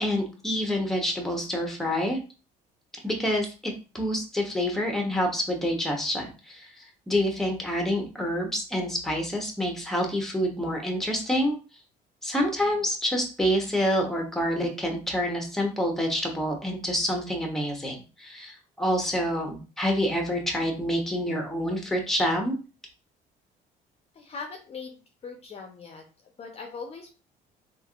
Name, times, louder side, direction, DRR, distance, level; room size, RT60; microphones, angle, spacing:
voice 1, 0.0-2.2 3.0-11.5 12.2-22.5, equal, ahead, 2 dB, 0.8 m, -27 dB
voice 2, 24.1-27.1, left 4 dB, 35° left, 3 dB, 0.6 m, -41 dB
3.4 x 2.4 x 2.3 m, 0.34 s
cardioid pair, 110°, 17 cm